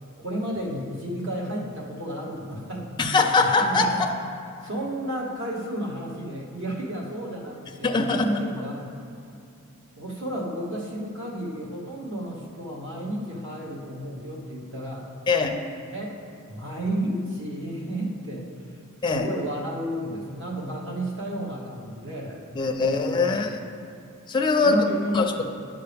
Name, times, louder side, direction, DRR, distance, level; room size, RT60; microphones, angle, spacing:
voice 1, 0.2-3.0 3.4-4.0 4.6-8.9 10.0-15.1 15.9-16.2 16.5-18.8 19.1-22.4 22.8-23.4 24.6-25.4, right 1 dB, 60° right, -2 dB, 1.2 m, -32 dB
voice 2, 3.0-4.1 7.8-8.3 15.3-15.6 19.0-19.3 22.5-23.6 24.3-24.8 25.1-25.2, left 4 dB, 20° left, 3 dB, 0.4 m, -22 dB
9.5 x 5.6 x 3.4 m, 2.5 s
head